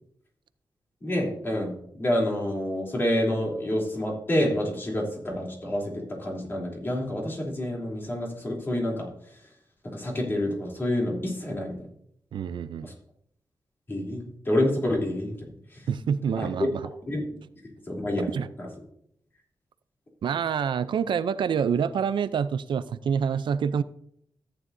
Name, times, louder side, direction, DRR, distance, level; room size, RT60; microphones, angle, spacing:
voice 1, 1.0-9.1 9.8-11.7 12.8-12.9 13.9-15.9 16.4-16.7 17.1-17.2 17.9-18.3 18.6-18.7, left 1 dB, 30° left, -2 dB, 3.2 m, -28 dB
voice 2, 12.3-12.9 15.9-16.8 18.3-18.5 20.2-23.8, right 7 dB, 90° right, 14 dB, 0.5 m, -27 dB
14.0 x 9.7 x 2.7 m, 0.69 s
wide cardioid pair, 175°, 8 cm